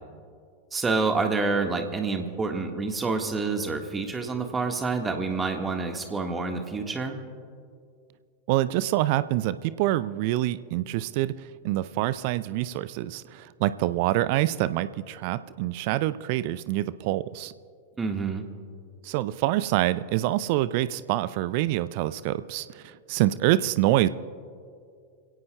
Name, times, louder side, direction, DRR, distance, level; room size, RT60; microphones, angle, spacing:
voice 1, 0.7-7.2 18.0-18.4, right 4 dB, 15° right, 4 dB, 1.6 m, -28 dB
voice 2, 8.5-11.3 11.6-17.5 19.0-24.1, right 15 dB, 45° right, 16 dB, 0.5 m, -26 dB
27.0 x 17.0 x 2.3 m, 2.3 s
figure-of-eight pair, 90°, 0 cm